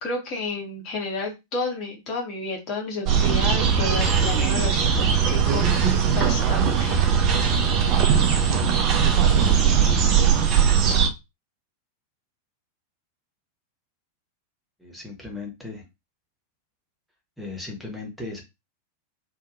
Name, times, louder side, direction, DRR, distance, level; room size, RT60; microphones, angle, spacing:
voice 1, 0.0-7.0, left 3 dB, 40° left, -1 dB, 1.3 m, -31 dB
sound 1, 3.1-11.1, right 7 dB, 35° right, 0.5 m, -20 dB
voice 2, 14.8-15.8 17.4-18.4, left 3 dB, ahead, 0 dB, 1.1 m, -36 dB
2.7 x 2.5 x 2.5 m, 0.23 s
figure-of-eight pair, 90°, 0 cm